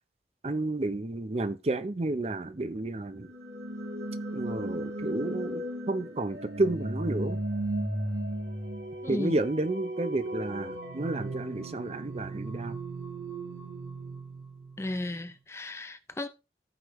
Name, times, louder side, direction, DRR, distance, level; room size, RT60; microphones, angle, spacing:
voice 1, 0.4-3.3 4.3-7.4 9.1-12.8, right 2 dB, 35° right, 0.5 m, -31 dB
sound 1, 3.2-15.1, right 1 dB, 90° right, 2.5 m, -36 dB
voice 2, 9.0-9.4 14.8-16.3, left 1 dB, 15° left, 0.4 m, -34 dB
14.5 x 5.0 x 3.0 m
head